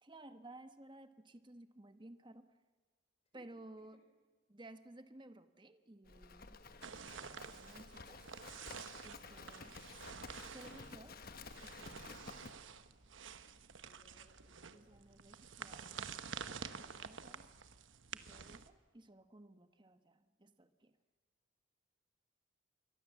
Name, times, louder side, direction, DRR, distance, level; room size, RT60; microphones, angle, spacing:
voice 1, 0.0-2.5 3.3-4.0 4.5-6.6 7.2-8.3 9.0-10.0 10.5-11.2 11.6-12.2 14.7-17.5 18.1-20.9, right 2 dB, 20° right, 10 dB, 1.1 m, -57 dB
Livestock farm animals working animals, 6.1-12.5, left 4 dB, 45° left, 1.2 m, -53 dB
sound 1, 6.8-18.7, right 6 dB, 70° right, 1.1 m, -50 dB
voice 2, 13.8-15.4, left 1 dB, 30° left, 0 dB, 4.5 m, -70 dB
27.0 x 23.5 x 7.4 m, 1.5 s
head